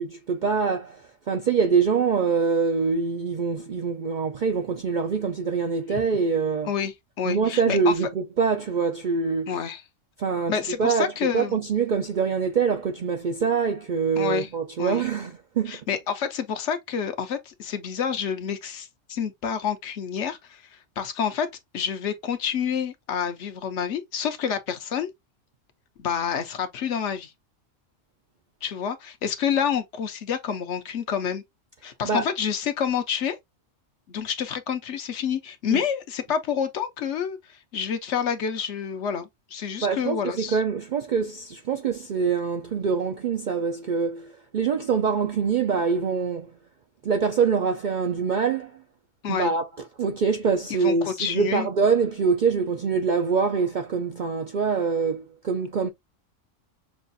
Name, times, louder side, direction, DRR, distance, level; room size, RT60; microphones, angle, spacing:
voice 1, 0.0-6.7 7.3-9.6 10.2-10.5 10.8-15.8 32.0-32.3 35.7-35.8 39.8-46.5 47.0-48.7 49.3-49.7 50.0-55.9, right 5 dB, 60° right, 0.5 m, -24 dB
voice 2, 6.6-7.9 9.5-9.8 10.5-11.6 14.2-14.5 14.8-15.0 15.7-21.5 21.7-25.1 26.0-27.3 28.6-31.4 31.8-33.4 34.1-40.6 49.2-49.5 50.8-51.7, left 7 dB, 65° left, 1.0 m, -28 dB
6.2 x 2.4 x 2.6 m
omnidirectional pair, 1.3 m